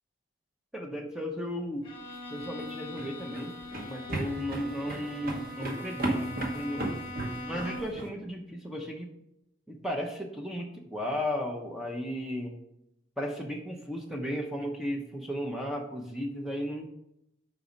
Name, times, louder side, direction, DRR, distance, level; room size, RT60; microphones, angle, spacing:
voice 1, 0.7-1.9 2.3-3.5 3.9-7.0 7.4-9.1 9.7-12.6 13.2-16.9, equal, ahead, 0 dB, 0.5 m, -35 dB
Bowed string instrument, 1.8-8.1, left 1 dB, 25° left, 1.1 m, -41 dB
sound 1, 2.4-8.1, right 2 dB, 45° right, 1.0 m, -36 dB
5.0 x 4.1 x 4.9 m, 0.81 s
head